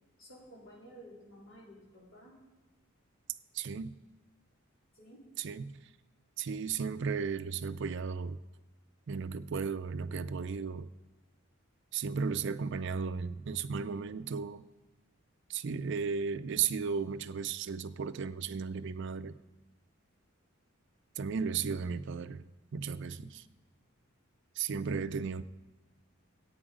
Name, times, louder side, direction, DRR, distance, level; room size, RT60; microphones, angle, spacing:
voice 1, 0.2-2.4 4.9-5.3 23.2-23.4, equal, 70° left, -4 dB, 3.6 m, -53 dB
voice 2, 3.5-4.0 5.4-5.9 6.4-8.4 9.1-10.9 11.9-14.6 15.5-19.4 21.2-22.4 22.7-23.4 24.6-25.4, right 5 dB, 55° right, 13 dB, 0.4 m, -35 dB
14.5 x 8.8 x 5.0 m, 1.2 s
head